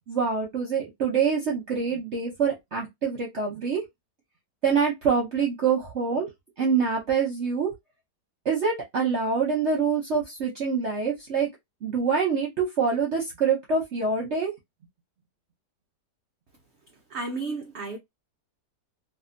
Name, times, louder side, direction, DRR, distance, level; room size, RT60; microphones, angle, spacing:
voice 1, 0.1-3.8 4.6-6.3 6.6-7.7 8.4-11.5 11.8-14.5, right 5 dB, 55° right, 0.9 m, -25 dB
voice 2, 17.1-18.0, right 3 dB, 90° right, 0.5 m, -32 dB
2.6 x 2.6 x 2.5 m
omnidirectional pair, 1.8 m